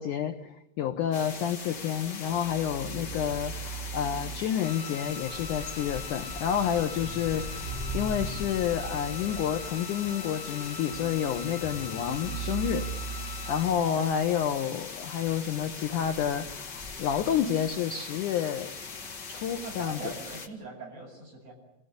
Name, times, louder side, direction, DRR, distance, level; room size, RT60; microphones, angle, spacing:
voice 1, 0.0-12.9 13.5-18.8 19.3-20.1, left 9 dB, 85° left, 6 dB, 1.8 m, -29 dB
sound 1, 1.1-20.5, left 4 dB, 45° left, 1.3 m, -40 dB
sound 2, 2.2-14.3, right 5 dB, 65° right, 5.8 m, -40 dB
sound 3, 4.6-13.6, left 5 dB, 20° left, 4.7 m, -44 dB
voice 2, 13.4-14.1 19.6-21.5, right 3 dB, 35° right, -1 dB, 8.8 m, -41 dB
26.5 x 18.5 x 9.6 m, 0.90 s
omnidirectional pair, 5.2 m